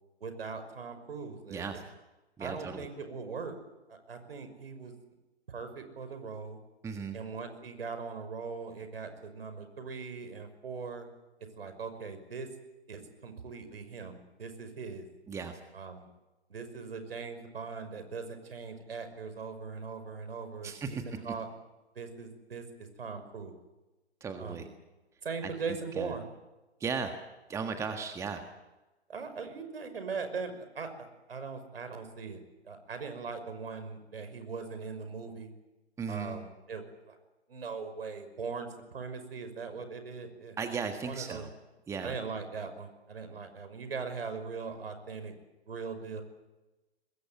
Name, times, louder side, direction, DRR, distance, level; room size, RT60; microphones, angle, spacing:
voice 1, 0.2-1.7 2.4-3.5 3.9-4.9 5.5-6.6 7.1-11.1 11.6-12.5 12.9-15.1 15.7-16.1 16.5-21.5 22.0-22.6 23.0-23.6 24.4-24.7 25.2-26.2 29.1-35.5 36.1-37.2 37.5-40.6 41.0-41.4 42.0-45.3 45.7-46.2, right 5 dB, 60° right, 9 dB, 5.8 m, -40 dB
voice 2, 1.5-1.8 2.4-2.8 6.8-7.1 15.3-15.6 20.6-21.0 24.2-24.7 25.4-26.1 26.8-27.1 27.5-28.4 36.0-36.4 40.6-41.5 41.9-42.1, right 5 dB, 10° right, 7 dB, 1.5 m, -36 dB
24.5 x 21.0 x 9.0 m, 1.1 s
figure-of-eight pair, 125°, 33 cm